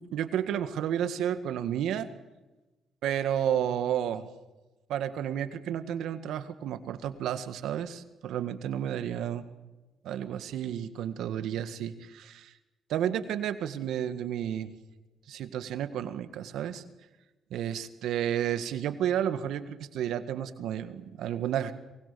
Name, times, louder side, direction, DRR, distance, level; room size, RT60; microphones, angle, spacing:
voice 1, 0.0-2.1 3.0-4.3 4.9-9.5 10.0-12.5 12.9-14.7 15.3-16.8 17.5-21.7, right 10 dB, 80° right, 9 dB, 1.8 m, -31 dB
23.5 x 20.0 x 7.0 m, 1.1 s
cardioid pair, 90°, 0 cm